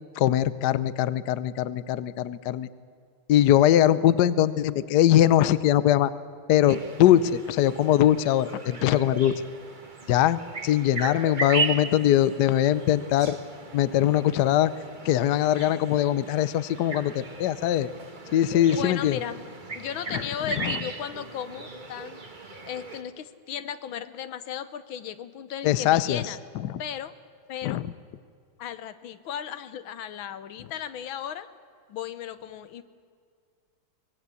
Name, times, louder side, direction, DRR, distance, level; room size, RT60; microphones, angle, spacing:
voice 1, 0.2-2.7 3.3-6.1 6.5-9.3 10.1-13.4 13.7-14.7 15.0-17.9 18.3-19.2 20.1-20.3 20.6-20.8 25.6-26.8 27.6-27.9, left 12 dB, 65° left, 16 dB, 1.2 m, -22 dB
sound 1, 6.7-23.0, right 4 dB, 25° right, 1.4 m, -37 dB
voice 2, 18.7-22.3 22.6-26.4 26.8-27.1 27.5-27.8 28.6-31.5 31.9-32.8, left 9 dB, 85° left, 13 dB, 1.7 m, -36 dB
24.5 x 19.0 x 8.4 m, 2.2 s
omnidirectional pair, 2.2 m